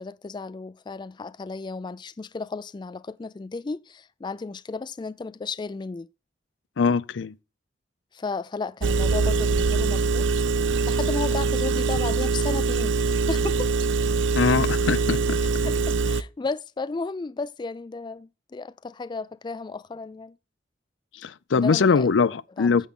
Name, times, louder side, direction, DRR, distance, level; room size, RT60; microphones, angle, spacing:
voice 1, 0.0-6.1 8.1-10.3 10.8-13.7 15.6-20.4 21.5-22.1 22.6-22.8, left 4 dB, 25° left, 0.3 m, -34 dB
voice 2, 6.8-7.3 14.3-15.7 21.2-22.9, left 5 dB, 85° left, 0.5 m, -22 dB
Engine, 8.8-16.2, right 4 dB, 90° right, 0.5 m, -23 dB
9.5 x 7.3 x 3.7 m
head